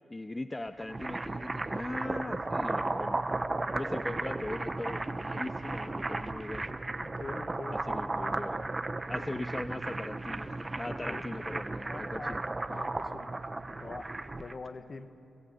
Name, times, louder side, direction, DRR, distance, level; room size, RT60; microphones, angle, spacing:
voice 1, 0.1-3.2 3.7-6.7 7.7-8.6 9.1-12.4, left 2 dB, 20° left, 10 dB, 0.8 m, -40 dB
sound 1, 0.7-14.6, right 2 dB, 25° right, 1.2 m, -35 dB
voice 2, 7.0-8.5 9.1-9.6 11.1-11.3 11.9-12.4 12.7-13.3 13.8-15.1, left 3 dB, 45° left, 9 dB, 1.8 m, -44 dB
29.5 x 21.5 x 8.6 m, 3.0 s
cardioid pair, 65°, 0 cm